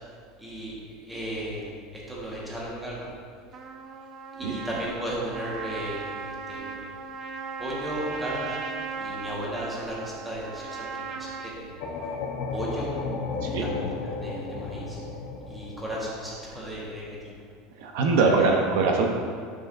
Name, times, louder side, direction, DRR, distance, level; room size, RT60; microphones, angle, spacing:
voice 1, 0.4-0.8 1.1-3.1 4.4-6.8 7.6-8.6 9.0-11.8 12.5-12.9 13.4-13.8 14.2-15.0 15.5-17.3 18.1-18.5, equal, 5° right, -6 dB, 1.4 m, -35 dB
Trumpet, 3.5-11.6, right 5 dB, 30° right, 0.4 m, -37 dB
sound 1, 11.8-16.8, left 4 dB, 55° left, 0.9 m, -33 dB
voice 2, 17.8-19.1, right 4 dB, 75° right, 2 dB, 0.8 m, -22 dB
9.0 x 6.3 x 2.6 m, 2.1 s
supercardioid pair, 165°, 0 cm